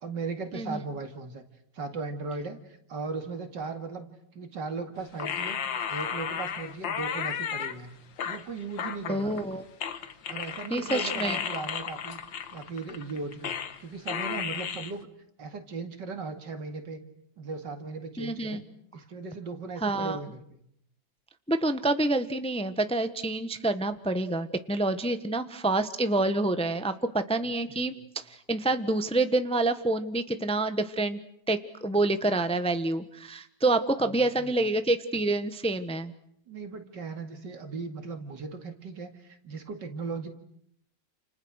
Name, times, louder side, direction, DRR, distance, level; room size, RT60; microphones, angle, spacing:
voice 1, 0.0-1.4 1.7-4.1 4.3-5.6 5.9-7.9 8.2-9.4 10.3-12.2 12.5-15.1 15.4-17.0 17.4-18.6 18.9-20.6 27.4-28.1 34.0-34.6 36.5-40.3, right 4 dB, 70° right, 7 dB, 2.9 m, -37 dB
sound 1, 5.2-7.7 8.2-9.5 9.8-13.8 14.1-14.9, left 8 dB, 85° left, 2.0 m, -33 dB
voice 2, 9.1-9.6 10.7-11.4 18.2-18.6 19.8-20.2 21.5-27.9 28.5-31.2 31.5-36.1, right 2 dB, 5° left, 10 dB, 1.0 m, -27 dB
30.0 x 29.0 x 6.5 m, 0.72 s
omnidirectional pair, 2.0 m